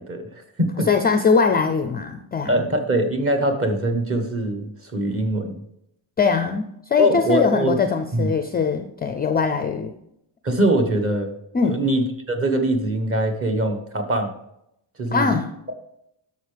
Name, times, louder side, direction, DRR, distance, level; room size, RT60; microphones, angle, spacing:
voice 1, 0.0-0.9 2.5-5.6 7.0-7.7 8.1-8.3 10.4-11.3 11.6-14.4 15.0-15.3, right 1 dB, 30° right, 5 dB, 1.2 m, -23 dB
voice 2, 0.9-2.6 6.2-9.9 11.5-11.8 15.1-15.5, left 5 dB, 20° left, 7 dB, 0.4 m, -21 dB
11.0 x 6.8 x 3.4 m, 0.79 s
cardioid pair, 160°, 47 cm